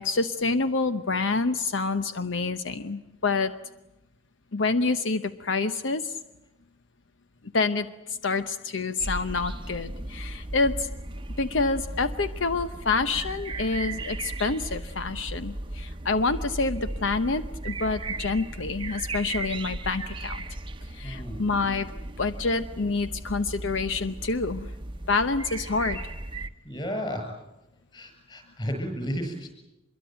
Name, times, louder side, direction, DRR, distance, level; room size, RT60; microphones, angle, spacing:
voice 1, 0.0-3.6 4.5-6.2 7.5-10.9 11.4-20.4 20.9-21.9 22.2-24.7 25.1-26.0, left 3 dB, 70° left, 10 dB, 0.9 m, -27 dB
sound 1, 9.0-26.5, right 2 dB, 25° right, 0.9 m, -36 dB
voice 2, 21.0-21.4 26.6-27.3 27.9-29.5, equal, 25° left, 5 dB, 7.2 m, -33 dB
25.5 x 22.5 x 9.1 m, 0.95 s
head